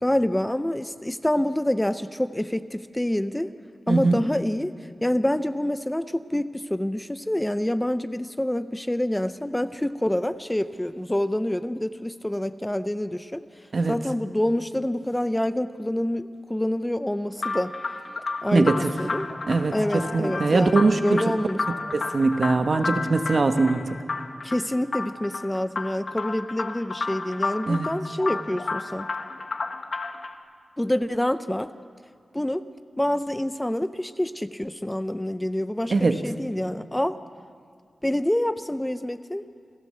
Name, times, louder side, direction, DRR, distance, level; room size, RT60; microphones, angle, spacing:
voice 1, 0.0-3.5 3.9-4.7 5.0-13.4 13.9-17.7 18.4-19.3 19.7-21.6 24.4-29.1 30.8-31.7 32.3-32.6 33.0-37.2 38.0-39.5, left 1 dB, 10° left, 11 dB, 0.7 m, -27 dB
voice 2, 3.9-4.2 13.7-13.9 18.5-18.9 19.5-19.7 20.1-21.2 21.9-23.8 27.7-27.9 35.9-36.2, right 3 dB, 55° right, 7 dB, 1.3 m, -21 dB
sound 1, 17.4-30.3, left 3 dB, 65° left, 1.4 m, -32 dB
28.5 x 16.0 x 7.7 m, 2.2 s
wide cardioid pair, 85°, 0 cm